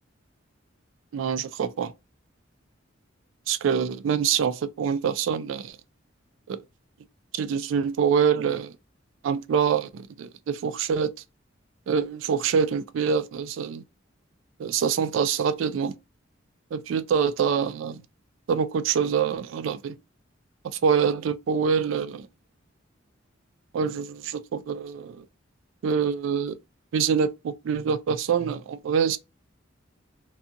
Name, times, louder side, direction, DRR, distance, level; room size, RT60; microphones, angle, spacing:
voice 1, 1.1-1.9 3.5-5.8 6.5-6.6 7.3-8.7 9.2-11.1 11.9-13.8 14.6-15.9 16.7-18.0 18.5-20.0 20.6-22.3 23.7-25.2 25.8-26.6 26.9-29.2, right 7 dB, 80° right, 0.3 m, -25 dB
2.7 x 2.3 x 2.4 m
head